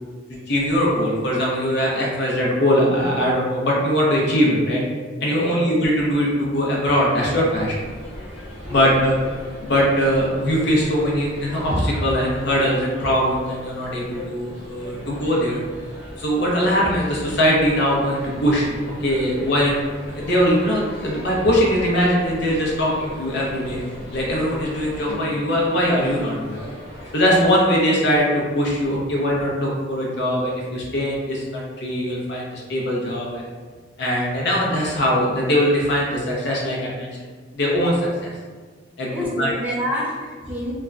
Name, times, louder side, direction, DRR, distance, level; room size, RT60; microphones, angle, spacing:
voice 1, 0.5-4.8 5.2-7.8 8.7-9.1 9.6-15.6 16.2-26.6 27.1-33.4 34.0-38.3 39.0-39.1 39.4-39.5, equal, 65° left, -3 dB, 0.7 m, -21 dB
voice 2, 5.3-5.6 8.7-8.9 39.1-40.7, left 1 dB, 10° right, -5 dB, 0.4 m, -28 dB
sound 1, 7.5-27.1, left 1 dB, 45° right, 1.2 m, -38 dB
3.2 x 2.1 x 2.4 m, 1.5 s
head